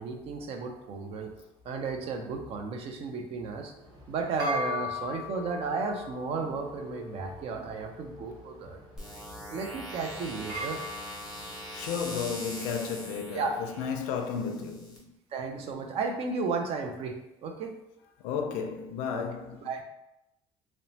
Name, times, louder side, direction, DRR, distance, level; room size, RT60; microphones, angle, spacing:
voice 1, 0.0-1.3 1.6-3.7 4.1-8.8 9.5-10.8 13.3-13.5 15.3-17.8 19.1-19.2 19.6-19.8, right 4 dB, 55° right, 0.4 m, -34 dB
sound 1, 3.8-12.3, left 2 dB, 35° right, 1.0 m, -40 dB
sound 2, 9.0-15.0, equal, 5° right, 0.9 m, -42 dB
voice 2, 11.7-15.1 18.2-19.8, left 6 dB, 90° left, 0.4 m, -33 dB
2.9 x 2.1 x 2.7 m
cardioid pair, 105°, 12 cm